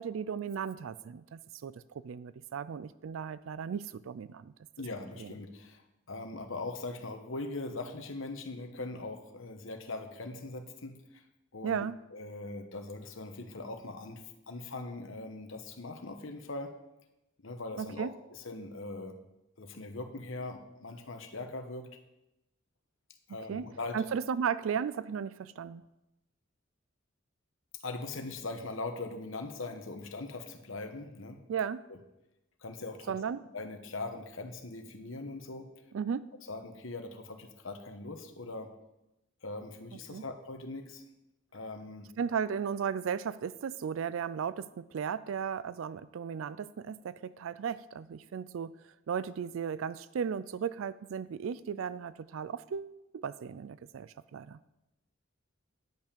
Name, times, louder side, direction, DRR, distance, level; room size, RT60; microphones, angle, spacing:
voice 1, 0.0-4.5 5.2-5.3 11.6-12.0 17.8-18.1 23.5-23.7 23.9-25.9 31.5-31.8 33.1-33.4 35.9-36.3 40.1-40.2 42.2-48.7 49.1-54.6, right 7 dB, 75° right, 17 dB, 0.4 m, -35 dB
voice 2, 4.8-5.8 6.1-11.2 11.5-11.8 12.1-16.7 17.4-19.1 19.6-22.0 23.3-24.0 27.7-31.4 31.9-32.0 32.6-33.2 33.5-35.7 36.5-38.7 39.4-41.0 41.5-42.1, left 2 dB, 70° left, 6 dB, 1.1 m, -41 dB
10.5 x 5.8 x 6.8 m, 0.94 s
head